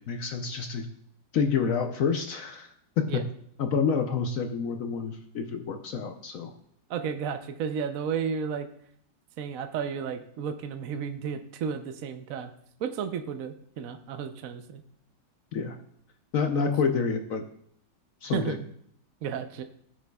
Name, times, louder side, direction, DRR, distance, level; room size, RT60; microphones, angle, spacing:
voice 1, 0.1-0.9 1.3-2.7 3.0-3.2 3.6-6.5 15.5-15.8 16.3-17.4 18.2-18.6, left 6 dB, 70° left, 5 dB, 0.8 m, -28 dB
voice 2, 6.9-8.7 9.4-12.5 12.8-14.8 18.3-18.7 19.2-19.6, right 7 dB, 65° right, 7 dB, 0.8 m, -33 dB
15.5 x 6.4 x 2.3 m, 0.67 s
omnidirectional pair, 2.1 m